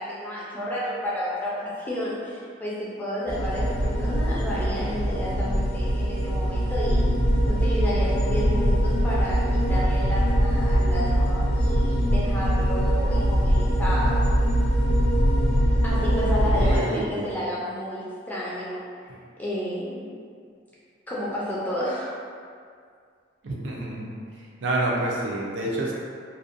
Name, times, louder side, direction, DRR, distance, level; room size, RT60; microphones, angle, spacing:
voice 1, 0.0-7.1 7.5-14.2 15.8-18.8 19.4-20.1 21.1-22.1, equal, 10° left, -8 dB, 0.4 m, -31 dB
sound 1, 3.3-16.8, equal, 55° left, 0.6 m, -22 dB
voice 2, 16.4-17.3 23.4-24.2 24.6-25.9, right 2 dB, 65° right, -3 dB, 0.4 m, -28 dB
2.6 x 2.1 x 2.5 m, 2.2 s
head